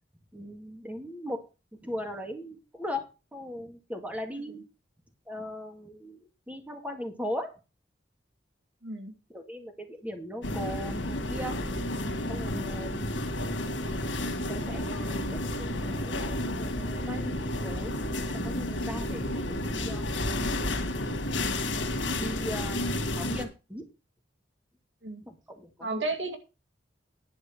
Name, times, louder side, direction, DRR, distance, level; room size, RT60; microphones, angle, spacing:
voice 1, 0.3-1.4 1.8-3.0 3.3-4.7 5.3-6.2 6.5-7.5 9.3-11.6 12.3-13.1 14.5-20.1 22.2-23.9 25.2-26.0, equal, 10° right, 4 dB, 1.9 m, -39 dB
voice 2, 8.8-9.1 25.0-25.2 25.8-26.4, right 2 dB, 85° right, 5 dB, 2.1 m, -32 dB
sound 1, 10.4-23.4, left 1 dB, 90° left, 1.9 m, -31 dB
10.5 x 4.9 x 7.2 m, 0.30 s
head